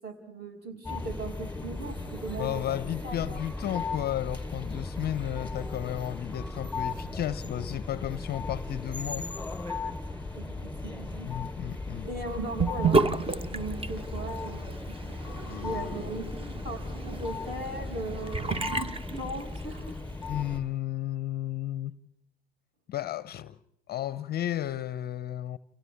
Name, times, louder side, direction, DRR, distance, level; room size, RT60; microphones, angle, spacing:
voice 1, 0.0-2.8 3.0-3.4 10.3-11.3 12.0-13.0 13.5-14.9 15.5-18.5 19.2-20.0, right 2 dB, 35° right, 7.1 m, -38 dB
sound 1, 0.8-20.6, left 3 dB, 5° left, 3.9 m, -37 dB
voice 2, 2.4-9.3 11.3-12.1 15.5-16.3 20.3-21.9 22.9-23.6 23.9-25.6, left 12 dB, 30° left, 0.8 m, -33 dB
Sink (filling or washing) / Bathtub (filling or washing), 12.6-19.9, right 3 dB, 20° right, 1.3 m, -31 dB
29.5 x 29.5 x 3.6 m
figure-of-eight pair, 75°, 30 cm